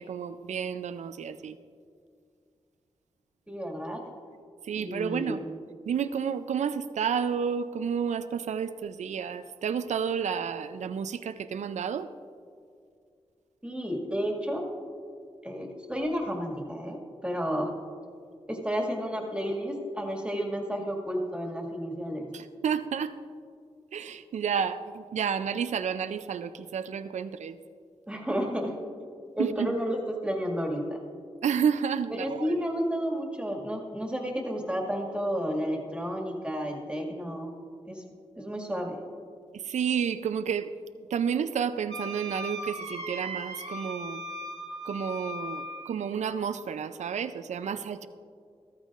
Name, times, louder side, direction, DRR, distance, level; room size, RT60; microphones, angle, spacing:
voice 1, 0.0-1.6 4.6-5.4 5.9-12.1 22.3-23.2 23.9-27.6 29.4-29.7 31.4-32.5 39.5-40.7 41.1-44.2 44.8-48.1, right 7 dB, 85° right, 11 dB, 0.4 m, -31 dB
voice 2, 3.5-4.1 4.8-5.5 13.6-14.7 15.4-17.7 18.5-22.3 28.1-28.8 29.4-31.0 32.1-37.5 37.9-38.0 38.4-39.0, equal, 10° right, 0 dB, 1.9 m, -31 dB
Wind instrument woodwind instrument, 41.9-46.3, equal, 70° right, 1.5 m, -38 dB
14.5 x 13.5 x 2.5 m, 2.3 s
wide cardioid pair, 80°, 12 cm